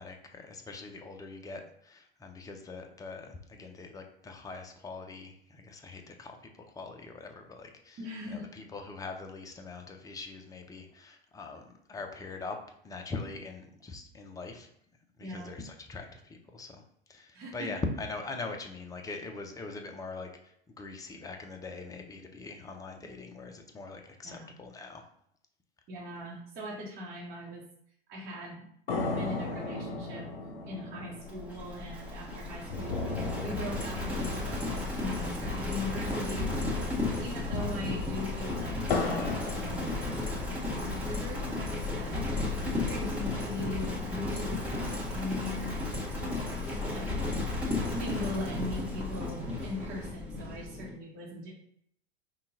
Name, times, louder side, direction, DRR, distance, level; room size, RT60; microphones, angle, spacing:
voice 1, 0.0-8.0 8.3-12.6 12.8-14.7 15.2-16.8 17.1-25.0 37.1-37.4 44.7-44.9, left 3 dB, 10° left, 4 dB, 0.6 m, -42 dB
voice 2, 8.0-8.5 15.2-15.5 17.3-17.7 24.2-24.6 25.9-27.6 28.1-28.7 29.0-30.3 30.7-51.5, left 1 dB, 30° right, -6 dB, 1.2 m, -40 dB
sound 1, 28.9-36.5 36.7-36.8 37.3-40.6 41.2-42.1, left 3 dB, 70° left, 0.7 m, -37 dB
Livestock farm animals working animals, 31.3-50.9, left 2 dB, 5° right, 1.5 m, -34 dB
5.5 x 2.4 x 3.8 m, 0.69 s
figure-of-eight pair, 85°, 31 cm